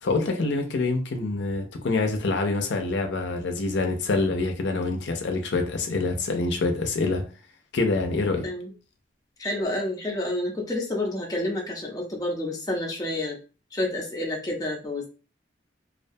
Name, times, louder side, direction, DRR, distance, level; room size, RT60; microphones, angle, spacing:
voice 1, 0.0-7.2 7.7-8.4, left 3 dB, 70° left, 0.5 m, -26 dB
voice 2, 9.4-13.4 13.7-15.0, left 1 dB, 20° left, 0.5 m, -29 dB
2.4 x 2.2 x 2.6 m
head